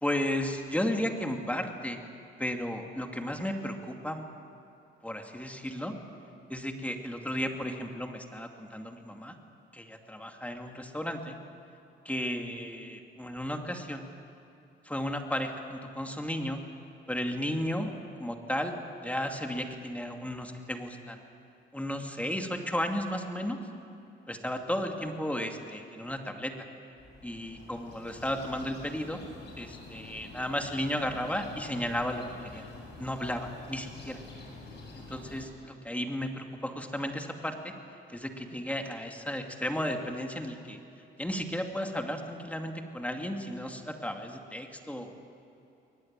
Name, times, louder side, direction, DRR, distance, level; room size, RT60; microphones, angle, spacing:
voice 1, 0.0-2.0 2.4-4.2 5.0-5.9 6.5-9.3 9.7-11.4 12.0-14.0 14.8-16.6 17.1-17.9 18.2-18.7 19.0-21.2 21.7-23.6 24.3-26.5 27.2-29.2 29.6-32.2 32.5-32.6 33.0-34.2 35.0-37.7 38.1-40.8 41.2-45.1, left 1 dB, 5° left, 4 dB, 2.4 m, -34 dB
sound 1, 27.0-35.5, left 3 dB, 60° left, 7.4 m, -47 dB
22.0 x 20.5 x 8.9 m, 2.7 s
cardioid pair, 90°, 20 cm